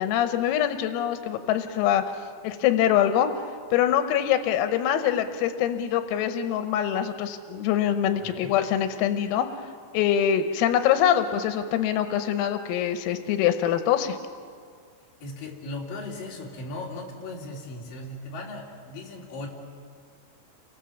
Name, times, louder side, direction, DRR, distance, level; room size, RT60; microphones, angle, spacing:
voice 1, 0.0-2.0 2.4-3.3 3.7-9.5 9.9-14.2, left 10 dB, 90° left, 9 dB, 3.7 m, -24 dB
voice 2, 15.2-19.5, left 2 dB, 45° left, -2 dB, 4.6 m, -37 dB
30.0 x 24.0 x 7.2 m, 2.1 s
omnidirectional pair, 5.9 m